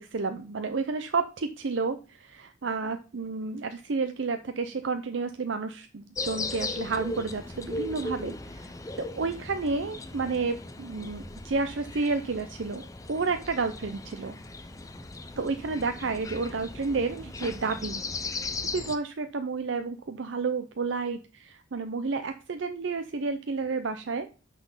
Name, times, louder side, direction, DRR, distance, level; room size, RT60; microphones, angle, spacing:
voice 1, 0.0-8.7 9.0-14.4 15.4-18.3 18.7-24.3, right 4 dB, 75° right, 9 dB, 0.6 m, -31 dB
sound 1, 6.2-19.0, left 3 dB, 15° left, 0.5 m, -38 dB
6.0 x 5.8 x 5.5 m, 0.36 s
head